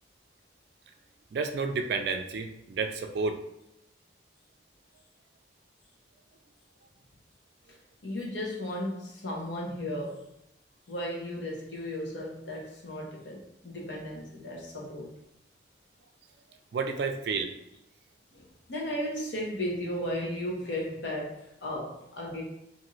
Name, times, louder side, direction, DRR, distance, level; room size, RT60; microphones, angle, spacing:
voice 1, 1.3-3.4 16.7-17.5, right 4 dB, 60° right, 6 dB, 0.3 m, -30 dB
voice 2, 8.0-10.3 10.9-15.1 18.3-22.4, left 1 dB, 70° left, -2 dB, 0.8 m, -35 dB
2.6 x 2.4 x 3.0 m, 0.84 s
head